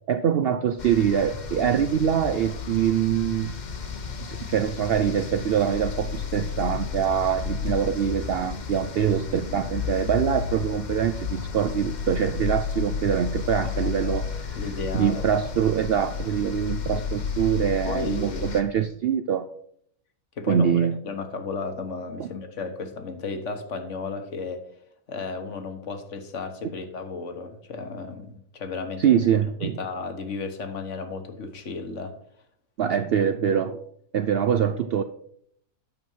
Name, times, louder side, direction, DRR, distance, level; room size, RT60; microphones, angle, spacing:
voice 1, 0.1-3.5 4.2-14.3 14.9-19.4 20.5-21.0 22.2-22.3 29.0-29.8 32.8-33.8 34.1-35.0, right 8 dB, 65° right, 9 dB, 0.6 m, -24 dB
sound 1, 0.8-18.6, left 6 dB, 40° left, 0.8 m, -32 dB
voice 2, 13.7-15.3 17.9-18.6 20.4-24.6 25.1-29.0 29.6-32.1 32.8-32.9, left 4 dB, 60° left, 7 dB, 1.4 m, -34 dB
9.1 x 6.0 x 5.5 m, 0.68 s
omnidirectional pair, 1.5 m